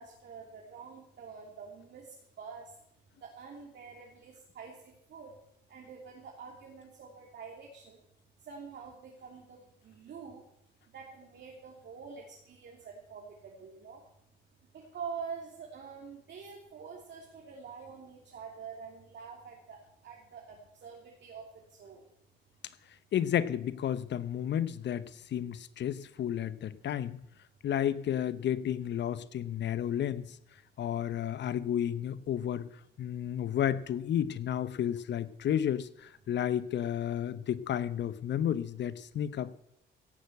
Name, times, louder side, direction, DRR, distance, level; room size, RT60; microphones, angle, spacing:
voice 1, 0.0-2.7 3.2-5.4 5.7-8.0 8.4-10.4 10.9-14.0 14.7-22.1, right 6 dB, 60° right, -1 dB, 2.8 m, -46 dB
voice 2, 23.1-27.2 27.6-30.2 30.8-32.7 33.0-39.5, left 10 dB, 65° left, 15 dB, 0.9 m, -32 dB
17.0 x 6.8 x 7.9 m, 0.76 s
cardioid pair, 90°, 20 cm